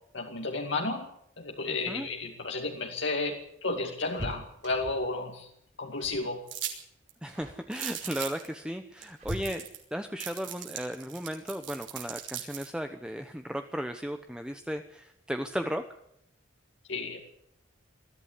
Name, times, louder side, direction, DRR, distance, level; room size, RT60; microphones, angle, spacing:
voice 1, 0.1-1.1 1.4-5.5 5.8-6.4 16.9-17.2, left 3 dB, 65° left, 1 dB, 2.4 m, -32 dB
sound 1, 2.6-5.2 6.0-6.3 6.6-6.9 7.3-7.7 8.5-10.0 11.7-11.8 12.2-12.3 13.5-13.9 14.2-14.3 14.6-14.8, equal, 40° right, 5.3 m, -43 dB
sound 2, 6.5-6.8 7.1-7.2 7.7-8.5 9.0-9.1 9.3-9.8 10.2-12.7, right 11 dB, 70° right, 5.8 m, -38 dB
voice 2, 7.2-9.6 9.9-15.9, equal, 5° right, 7 dB, 0.9 m, -35 dB
21.5 x 14.5 x 8.4 m, 0.75 s
head